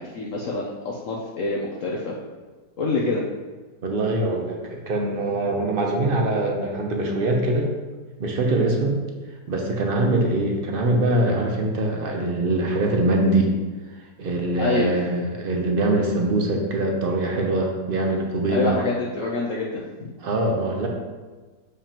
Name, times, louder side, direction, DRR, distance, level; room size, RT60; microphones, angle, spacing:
voice 1, 0.0-2.2 2.8-3.2 14.6-14.9 18.5-20.1, left 3 dB, 65° left, -2 dB, 0.9 m, -26 dB
voice 2, 3.8-7.7 8.2-9.0 9.5-13.5 14.2-18.8 20.2-20.9, right 2 dB, 55° right, 1 dB, 0.6 m, -23 dB
7.1 x 5.0 x 2.9 m, 1.3 s
omnidirectional pair, 1.8 m